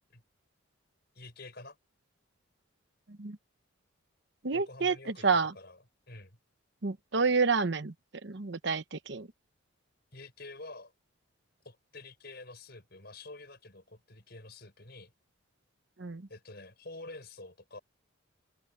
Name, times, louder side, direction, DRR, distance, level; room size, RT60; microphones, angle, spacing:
voice 1, 1.1-1.8 4.5-5.3 5.5-5.8 6.1-6.4 10.1-10.9 11.6-15.1 16.3-17.8, left 2 dB, 50° left, 6.2 m, -48 dB
voice 2, 4.4-5.5 6.8-7.9 8.2-9.3 16.0-16.2, right 4 dB, 55° right, 0.9 m, -29 dB
open air
head